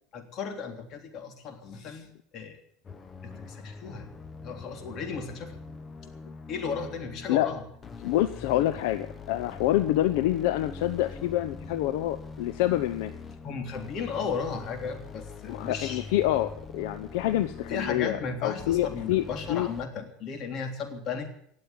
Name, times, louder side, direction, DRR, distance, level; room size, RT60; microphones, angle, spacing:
voice 1, 0.1-2.6 3.2-4.1 4.4-5.6 6.5-7.6 13.4-16.1 17.7-21.3, left 5 dB, 45° left, 5 dB, 3.4 m, -35 dB
sound 1, 2.8-19.9, left 4 dB, 25° left, 1.2 m, -43 dB
voice 2, 8.0-13.1 15.5-19.7, left 14 dB, 75° left, 11 dB, 0.8 m, -27 dB
18.5 x 7.7 x 9.8 m, 0.67 s
supercardioid pair, 115°, 0 cm